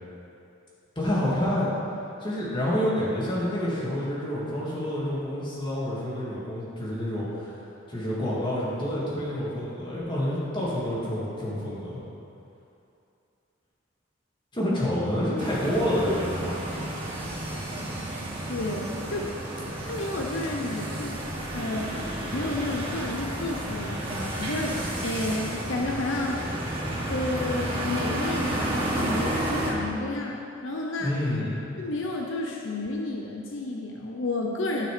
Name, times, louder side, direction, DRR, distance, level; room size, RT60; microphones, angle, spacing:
voice 1, 1.0-1.7 2.2-7.6 7.9-12.0 14.5-16.6 31.0-31.6, left 1 dB, 25° left, -7 dB, 2.4 m, -28 dB
sound 1, 15.4-29.7, right 1 dB, 25° right, 1.8 m, -31 dB
voice 2, 18.5-19.3 19.8-21.2 21.5-26.4 27.1-31.1 31.8-34.9, left 2 dB, 70° left, 0 dB, 0.8 m, -31 dB
12.0 x 6.0 x 5.0 m, 2.7 s
head